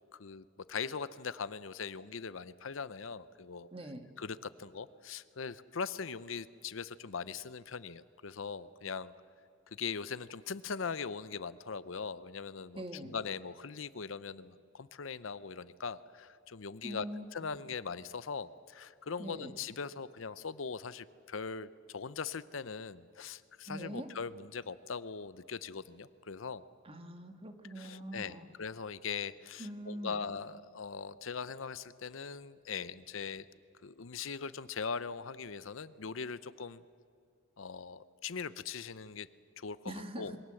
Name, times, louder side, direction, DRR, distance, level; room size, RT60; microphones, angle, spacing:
voice 1, 0.2-3.7 4.2-9.1 9.8-17.1 17.3-26.6 27.8-33.4 33.8-36.8 37.6-39.3 39.6-40.3, left 5 dB, 75° left, 16 dB, 0.7 m, -41 dB
voice 2, 3.7-4.1 12.8-13.2 16.8-17.3 19.2-19.5 23.7-24.1 26.8-28.5 29.6-30.2 39.9-40.3, right 1 dB, 30° right, 6 dB, 1.7 m, -43 dB
27.0 x 23.0 x 7.8 m, 2.3 s
head